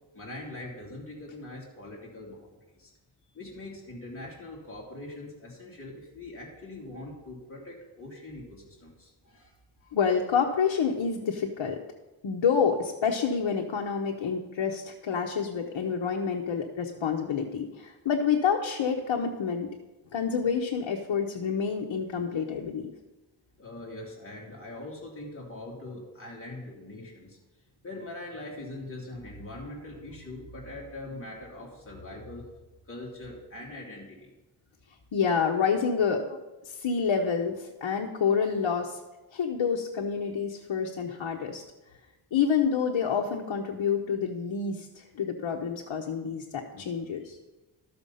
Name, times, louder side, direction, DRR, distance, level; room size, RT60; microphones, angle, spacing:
voice 1, 0.1-2.5 2.8-2.9 3.3-9.5 9.8-9.9 23.6-27.4 27.8-32.4 32.9-34.3, left 2 dB, 30° left, -4 dB, 2.8 m, -42 dB
voice 2, 9.9-11.8 12.2-19.7 20.1-22.9 35.1-36.4 36.6-39.0 39.3-41.6 42.3-47.4, left 6 dB, 70° left, 1 dB, 1.0 m, -28 dB
13.0 x 6.9 x 5.6 m, 1.1 s
wide cardioid pair, 140°, 47 cm